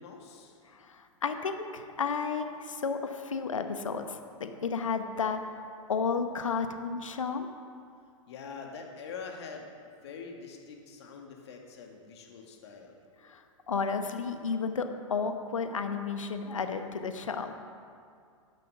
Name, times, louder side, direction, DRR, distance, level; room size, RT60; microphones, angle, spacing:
voice 1, 0.0-0.6 8.3-9.7 10.0-13.0, left 5 dB, 55° left, 2 dB, 2.0 m, -44 dB
voice 2, 0.7-5.4 5.9-7.5 13.2-17.5, left 5 dB, 70° left, 8 dB, 1.0 m, -32 dB
12.0 x 10.0 x 5.7 m, 2.3 s
figure-of-eight pair, 100°, 17 cm